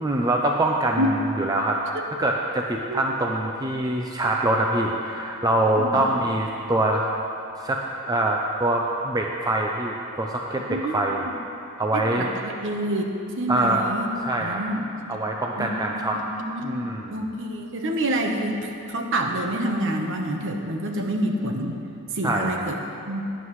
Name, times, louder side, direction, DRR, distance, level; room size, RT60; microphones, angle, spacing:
voice 1, 0.0-1.8 2.2-7.1 7.6-11.2 11.8-12.3 13.5-13.9 14.2-14.6 15.1-16.2 16.6-17.1 22.2-22.7, right 1 dB, 20° right, 0 dB, 0.5 m, -24 dB
voice 2, 10.6-11.0 11.9-13.1 13.4-14.1 14.4-14.9 15.6-16.0 16.3-21.8 22.1-22.8 23.1-23.3, right 1 dB, 60° right, 3 dB, 1.1 m, -27 dB
17.0 x 9.6 x 3.2 m, 2.7 s
head